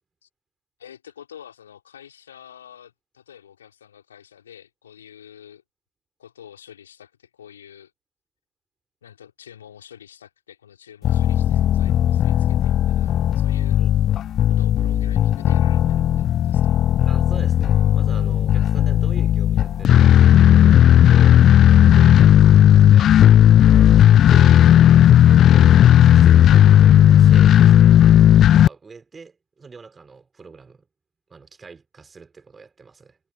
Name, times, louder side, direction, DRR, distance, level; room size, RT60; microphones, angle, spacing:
voice 1, 0.8-5.6 6.2-7.9 9.0-13.8 14.5-16.8, left 9 dB, 65° left, 3.8 m, -46 dB
sound 1, 11.0-28.7, left 11 dB, 30° left, 0.3 m, -14 dB
voice 2, 17.1-23.9 24.3-27.8 28.6-30.9 31.3-33.2, right 4 dB, 15° right, 5.9 m, -43 dB
figure-of-eight pair, 90°, 0 cm